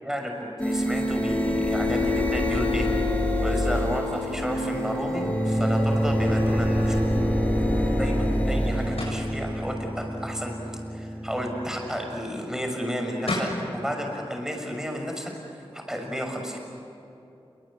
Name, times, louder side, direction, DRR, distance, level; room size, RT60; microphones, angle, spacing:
voice 1, 0.0-2.9 3.4-7.0 8.0-10.5 10.9-16.6, equal, 5° right, 2 dB, 6.3 m, -32 dB
sound 1, 0.6-12.2, left 1 dB, 15° left, 5.7 m, -26 dB
sound 2, 9.0-9.3 12.9-13.0 13.3-13.6, left 2 dB, 80° left, 7.9 m, -29 dB
28.0 x 23.5 x 8.8 m, 2.7 s
wide cardioid pair, 70°, 10 cm